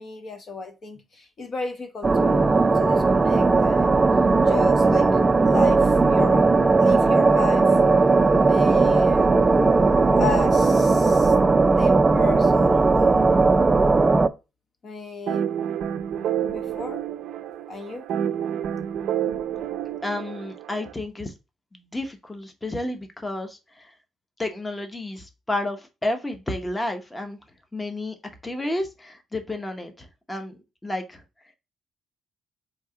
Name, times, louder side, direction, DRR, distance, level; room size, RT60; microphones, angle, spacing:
voice 1, 0.0-4.0 4.4-6.5 6.8-7.8 8.4-9.4 10.1-11.3 11.7-13.5 14.8-15.5 16.1-17.0 17.7-18.1, left 4 dB, 45° left, 0.8 m, -35 dB
sound 1, 2.0-14.3, right 3 dB, 25° right, 0.4 m, -18 dB
sound 2, 15.3-20.9, right 9 dB, 80° right, 0.5 m, -29 dB
voice 2, 20.0-21.3 21.7-23.9 24.4-27.4 27.7-28.2 28.4-31.2, left 1 dB, 15° left, 0.8 m, -31 dB
4.5 x 2.8 x 3.8 m
cardioid pair, 90°, 0 cm